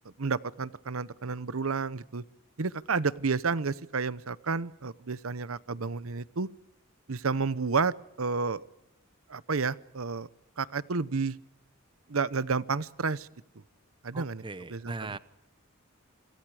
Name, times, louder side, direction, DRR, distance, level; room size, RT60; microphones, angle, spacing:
voice 1, 0.2-2.2 2.6-6.5 7.1-8.6 9.3-10.3 10.6-11.4 12.1-13.3 14.0-14.4 14.7-15.2, right 4 dB, 85° right, 18 dB, 0.9 m, -31 dB
voice 2, 14.1-15.2, right 3 dB, 25° right, 15 dB, 0.8 m, -39 dB
28.5 x 26.5 x 4.9 m, 0.82 s
head